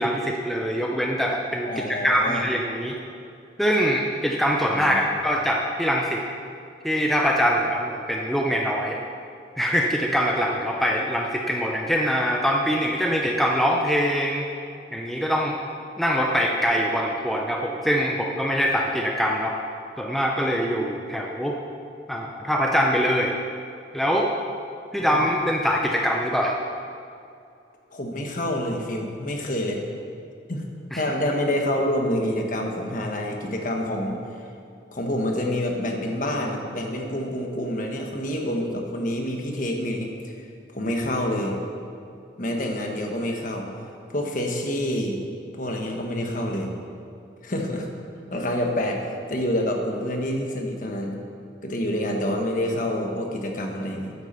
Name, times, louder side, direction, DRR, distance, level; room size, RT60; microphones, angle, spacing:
voice 1, 0.0-3.0 3.6-6.2 6.8-9.0 9.6-14.4 14.9-15.6 16.0-19.5 20.0-21.6 22.1-23.3 23.9-24.3 24.9-26.6 30.9-31.0, equal, ahead, -1 dB, 0.6 m, -23 dB
voice 2, 1.6-2.5 4.7-5.1 25.0-25.1 27.9-29.8 30.5-30.6 30.9-34.2 34.9-40.4 40.7-41.6 42.4-43.7 44.1-45.2 45.6-46.7 47.4-47.9 48.3-51.1 51.6-54.1, left 1 dB, 45° left, 2 dB, 1.3 m, -27 dB
9.4 x 8.3 x 6.7 m, 2.5 s
head